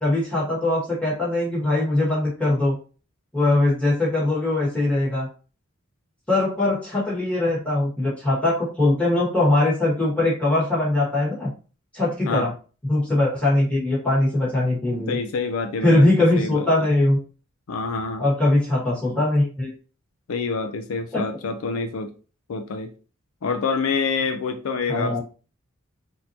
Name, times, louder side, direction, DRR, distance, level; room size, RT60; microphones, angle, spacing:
voice 1, 0.0-2.8 3.3-5.3 6.3-11.5 11.9-12.5 12.9-15.2 15.8-17.2 18.2-19.7 21.1-21.2 24.9-25.2, left 2 dB, 5° left, 1.7 m, -21 dB
voice 2, 15.1-16.1 16.4-16.7 17.7-18.2 20.3-22.1 22.5-22.9 23.4-25.2, left 4 dB, 75° left, 0.4 m, -26 dB
4.2 x 2.7 x 2.8 m
head